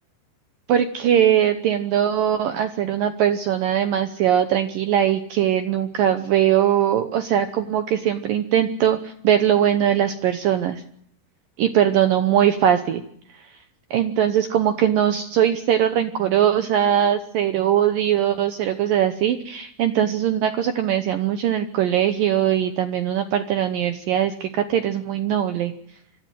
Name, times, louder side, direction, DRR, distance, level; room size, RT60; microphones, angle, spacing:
voice 1, 0.7-10.8 11.6-13.0 13.9-25.7, right 10 dB, 85° right, 9 dB, 1.9 m, -21 dB
25.5 x 14.0 x 9.1 m, 0.69 s
omnidirectional pair, 5.5 m